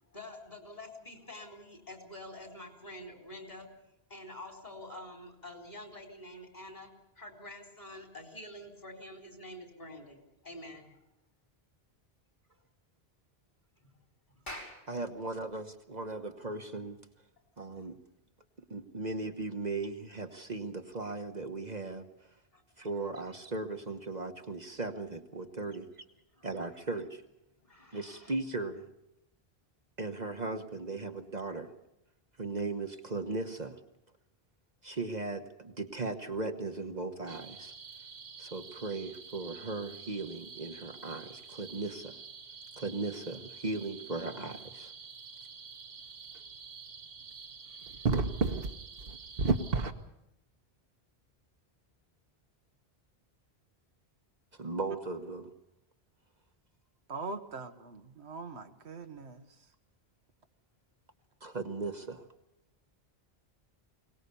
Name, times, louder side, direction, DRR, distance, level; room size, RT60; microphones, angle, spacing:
voice 1, 0.1-3.7 4.1-6.9 7.2-11.0 17.7-17.9 22.5-22.6 26.3-26.5 27.6-28.3, left 1 dB, 40° left, 4 dB, 4.0 m, -47 dB
Clapping, 14.2-19.1, equal, 60° left, 4.8 m, -50 dB
voice 2, 14.9-17.0 17.6-18.0 18.7-22.1 22.8-25.9 26.4-27.2 27.9-28.9 30.0-31.7 32.4-33.8 34.8-37.7 38.4-42.2 42.8-44.9 54.6-55.5 61.4-62.3, right 3 dB, 45° right, 5 dB, 1.3 m, -37 dB
sound 1, 37.3-49.9, right 4 dB, 65° right, 1.4 m, -38 dB
voice 3, 57.1-59.5, right 4 dB, 90° right, 8 dB, 1.6 m, -42 dB
23.0 x 19.0 x 7.0 m, 0.84 s
omnidirectional pair, 1.1 m